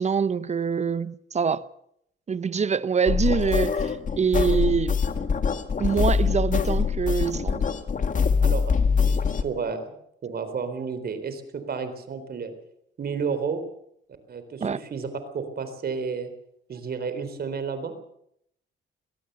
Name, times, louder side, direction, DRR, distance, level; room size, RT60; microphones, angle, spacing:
voice 1, 0.0-1.6 2.3-5.0 5.8-7.6 14.6-14.8, right 6 dB, 35° right, 0.8 m, -25 dB
sound 1, 3.1-9.4, left 5 dB, 40° left, 1.8 m, -23 dB
voice 2, 8.4-9.9 10.2-12.5 13.0-13.6 14.3-16.3 16.7-17.9, right 5 dB, 50° right, 3.8 m, -31 dB
22.5 x 17.5 x 6.8 m
cardioid pair, 90°, 20 cm